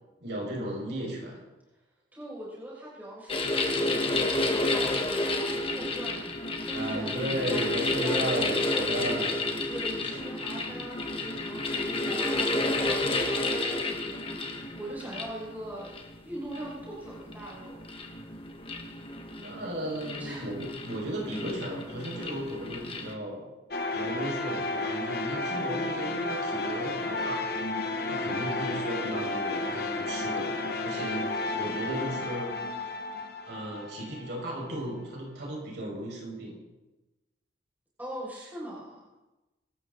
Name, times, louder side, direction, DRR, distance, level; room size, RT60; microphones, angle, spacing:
voice 1, 0.2-1.4 6.7-9.4 19.4-23.5 23.9-27.7 28.1-32.5 33.5-36.6, right 1 dB, 65° right, -2 dB, 6.1 m, -35 dB
voice 2, 2.1-9.2 9.7-14.3 14.8-15.9 16.2-17.9 20.2-20.5 38.0-39.1, right 1 dB, 10° right, -6 dB, 6.3 m, -41 dB
sound 1, 3.3-23.1, left 2 dB, 30° left, 1.7 m, -31 dB
sound 2, 23.7-34.6, left 2 dB, 55° left, 1.5 m, -32 dB
25.5 x 13.0 x 4.1 m, 1.1 s
head